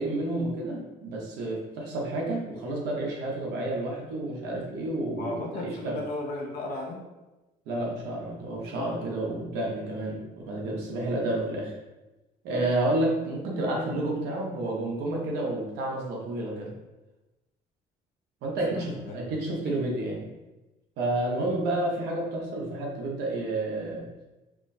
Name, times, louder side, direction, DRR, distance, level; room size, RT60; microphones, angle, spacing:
voice 1, 0.0-6.0 7.7-11.7 12.4-16.7 18.4-20.3 21.0-24.1, right 1 dB, 85° right, -2 dB, 0.9 m, -30 dB
voice 2, 5.2-7.0 18.6-19.2 21.2-21.3, left 2 dB, 65° left, 0 dB, 0.7 m, -35 dB
4.7 x 2.0 x 2.6 m, 1.1 s
cardioid pair, 110°, 17 cm